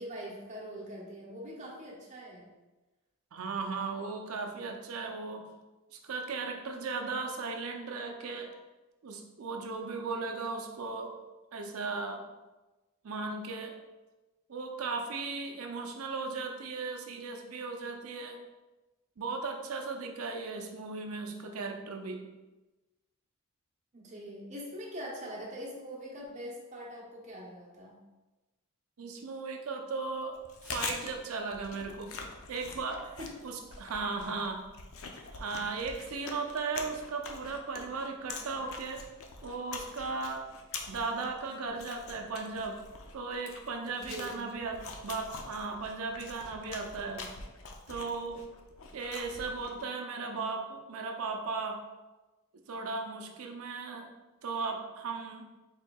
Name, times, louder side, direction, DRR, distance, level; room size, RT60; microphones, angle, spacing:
voice 1, 0.0-2.5 23.9-28.0 33.2-33.3 35.5-35.6 43.8-44.5, equal, 30° right, -5 dB, 0.8 m, -43 dB
voice 2, 3.3-5.5 5.9-8.5 9.0-11.1 11.5-12.2 13.0-13.8 14.5-18.4 19.2-22.3 29.0-30.4 30.7-32.1 32.5-34.6 35.3-39.0 39.4-40.5 40.9-42.8 43.1-47.3 47.9-48.4 48.9-51.8 52.7-54.1 54.4-55.5, right 4 dB, 65° right, 3 dB, 0.5 m, -36 dB
Chewing mastication, 30.3-49.9, left 4 dB, 65° left, 0.5 m, -45 dB
4.4 x 3.7 x 2.3 m, 1.1 s
head